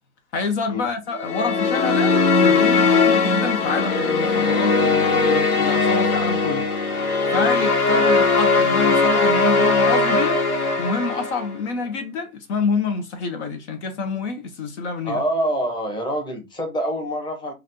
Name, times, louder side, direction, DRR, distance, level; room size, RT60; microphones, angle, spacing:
voice 1, 0.3-6.7 7.3-10.4 10.8-15.2, left 4 dB, 50° left, 0.9 m, -27 dB
sound 1, 1.2-11.6, left 3 dB, 80° left, 1.0 m, -19 dB
voice 2, 15.0-17.5, right 1 dB, 10° left, 1.0 m, -25 dB
3.1 x 2.6 x 4.1 m
hypercardioid pair, 110°, 43 cm